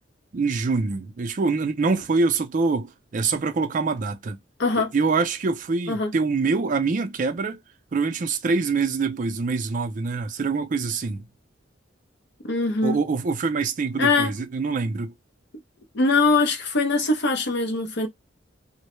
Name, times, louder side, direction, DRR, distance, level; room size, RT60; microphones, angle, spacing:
voice 1, 0.3-4.4 4.8-7.6 7.9-11.2 12.8-15.1, right 4 dB, 45° right, 0.4 m, -25 dB
voice 2, 4.6-4.9 5.9-6.1 12.4-13.0 14.0-14.3 15.9-18.1, left 3 dB, 60° left, 0.6 m, -22 dB
2.1 x 2.0 x 3.0 m
head